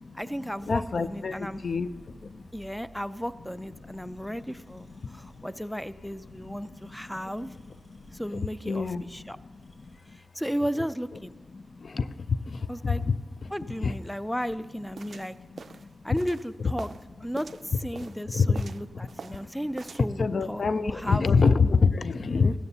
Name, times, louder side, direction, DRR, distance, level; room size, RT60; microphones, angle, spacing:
voice 1, 0.1-1.6 2.5-7.5 8.1-9.4 10.3-11.3 12.7-13.0 13.5-15.3 16.0-16.9 17.2-21.3, equal, 5° left, 15 dB, 0.4 m, -34 dB
sound 1, 0.6-10.1, right 1 dB, 30° left, 3.7 m, -56 dB
voice 2, 0.7-1.9 8.6-9.0 11.9-12.0 12.5-12.6 12.8-13.1 13.8-13.9 16.6-16.7 18.3-18.6 20.2-22.5, left 4 dB, 65° left, 15 dB, 0.4 m, -24 dB
sound 2, 15.0-17.0 17.4-18.2 18.5-19.5 19.8-20.1, right 5 dB, 70° right, 0.3 m, -43 dB
16.5 x 13.5 x 2.8 m, 1.3 s
cardioid pair, 45°, 0 cm